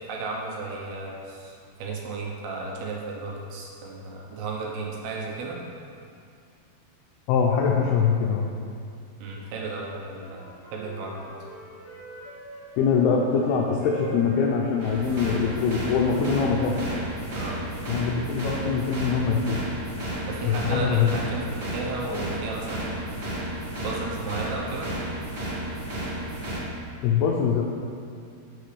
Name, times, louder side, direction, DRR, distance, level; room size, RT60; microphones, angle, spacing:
voice 1, 0.1-5.6 9.2-11.4 17.3-17.6 20.3-23.2 23.8-24.9, right 3 dB, 75° right, -2 dB, 2.9 m, -34 dB
voice 2, 7.3-8.5 12.8-16.8 17.9-19.6 20.4-21.1 27.0-27.6, left 6 dB, 80° left, -1 dB, 2.4 m, -23 dB
Wind instrument woodwind instrument, 9.9-12.9 13.3-16.7, equal, 65° left, 3.2 m, -43 dB
sound 1, 14.8-26.6, right 1 dB, 50° right, 1.7 m, -32 dB
12.5 x 6.7 x 3.3 m, 2.4 s
omnidirectional pair, 5.2 m